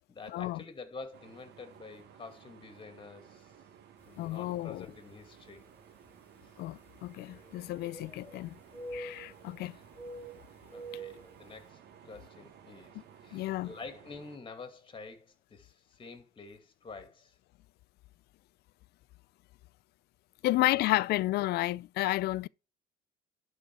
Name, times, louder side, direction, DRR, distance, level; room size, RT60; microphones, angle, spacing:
voice 1, 0.0-3.5 4.0-5.6 9.7-9.8 10.7-17.4 20.4-20.8, left 4 dB, 30° left, 2.4 m, -48 dB
sound 1, 1.1-14.4, right 9 dB, 75° right, 1.4 m, -56 dB
voice 2, 4.2-4.9 6.6-8.5 8.9-9.8 13.3-13.7 20.4-22.5, left 17 dB, 75° left, 0.4 m, -31 dB
sound 2, 4.3-4.4 5.2-5.3 7.2-8.4 8.7-9.5 9.9-11.3, right 2 dB, 10° left, 4.3 m, -45 dB
12.0 x 4.4 x 6.1 m
cardioid pair, 110°, 17 cm